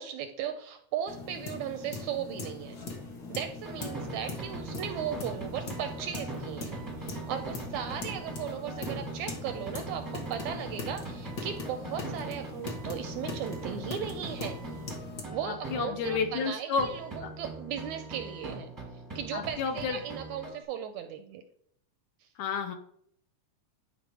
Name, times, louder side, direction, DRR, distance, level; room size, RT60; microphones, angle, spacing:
voice 1, 0.0-2.8 3.3-14.6 15.3-21.4, right 9 dB, 80° right, 7 dB, 1.7 m, -37 dB
sound 1, 1.1-15.2, left 3 dB, 55° left, 1.1 m, -41 dB
sound 2, 3.6-16.5 16.8-20.6, right 3 dB, 15° right, 0.6 m, -41 dB
voice 2, 15.4-16.9 17.2-17.3 19.3-20.0 22.4-22.7, left 5 dB, 75° left, 6 dB, 1.8 m, -31 dB
11.0 x 3.8 x 4.8 m, 0.68 s
omnidirectional pair, 3.7 m